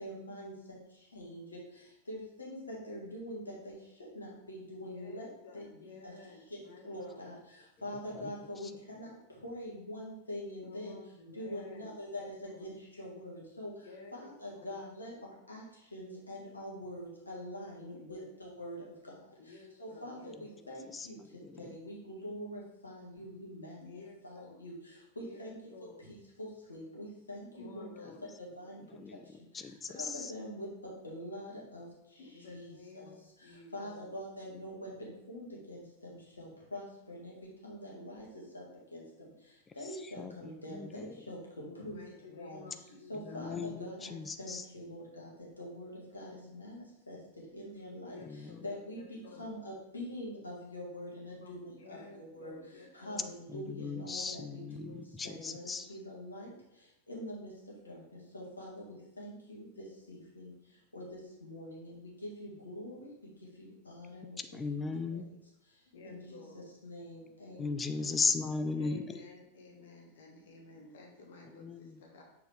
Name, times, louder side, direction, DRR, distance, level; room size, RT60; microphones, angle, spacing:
voice 1, 0.0-5.3 5.5-6.1 6.5-11.0 11.3-25.6 26.0-28.1 28.4-28.8 29.2-38.6 38.9-42.8 43.1-55.6 55.9-64.4 64.9-65.3 65.7-68.2, equal, 80° left, -4 dB, 1.9 m, -45 dB
voice 2, 4.8-7.3 10.6-12.7 13.8-14.8 17.9-18.3 19.4-20.7 23.8-24.6 25.3-26.0 27.5-28.2 32.2-34.0 41.6-43.4 48.0-49.5 51.3-53.3 65.9-66.6 68.7-72.2, left 3 dB, 60° left, 0 dB, 1.5 m, -53 dB
voice 3, 7.9-8.7 20.3-20.5 20.9-21.8 28.1-28.2 28.8-30.3 39.7-41.3 43.1-44.7 48.2-48.7 53.5-55.9 64.4-65.3 67.6-69.3 71.4-72.0, left 4 dB, 15° left, 9 dB, 0.4 m, -38 dB
6.5 x 4.6 x 3.4 m, 0.83 s
figure-of-eight pair, 90°, 0 cm